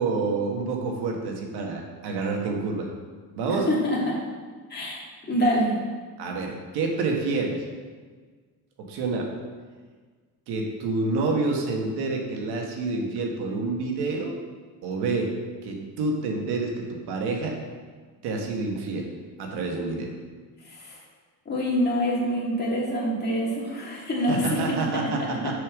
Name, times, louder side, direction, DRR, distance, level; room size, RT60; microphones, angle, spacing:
voice 1, 0.0-2.9 3.4-3.7 6.2-7.6 8.8-9.3 10.5-14.4 14.8-15.3 15.6-17.6 18.2-19.1 19.4-20.1 24.3-25.5, right 3 dB, 85° right, 1 dB, 1.5 m, -28 dB
voice 2, 3.7-4.2 4.7-5.8 20.7-21.0 21.5-24.6 25.0-25.5, equal, 25° left, -4 dB, 2.3 m, -26 dB
6.8 x 5.2 x 6.1 m, 1.5 s
cardioid pair, 115°, 38 cm